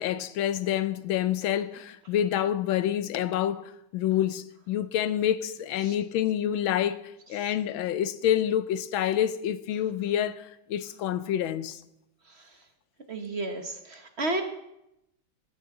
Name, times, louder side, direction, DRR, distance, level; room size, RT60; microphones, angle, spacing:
voice 1, 0.0-11.8, left 10 dB, 80° left, 1.5 m, -28 dB
voice 2, 13.1-14.4, right 2 dB, 35° right, 1.3 m, -32 dB
18.5 x 10.0 x 3.9 m
omnidirectional pair, 2.2 m